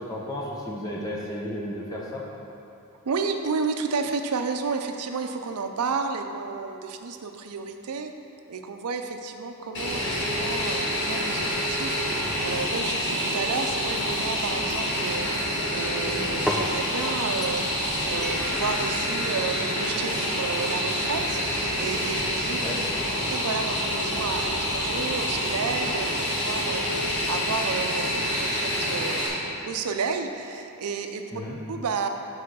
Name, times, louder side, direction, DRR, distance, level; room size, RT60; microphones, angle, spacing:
voice 1, 0.0-2.2 22.6-22.8 31.3-31.6, left 1 dB, 15° left, -4 dB, 0.7 m, -33 dB
voice 2, 3.0-8.1 8.5-12.0 12.4-15.3 15.7-17.7 18.0-22.6 23.3-26.1 26.4-31.2 31.7-32.1, right 5 dB, 85° right, 6 dB, 0.5 m, -31 dB
Fixed-wing aircraft airplane, 9.7-29.3, equal, 55° left, 1.6 m, -27 dB
sound 1, 13.2-15.5 16.1-16.7 17.4-17.8 18.2-18.5, equal, ahead, 0.3 m, -35 dB
5.8 x 4.9 x 6.2 m, 2.9 s
head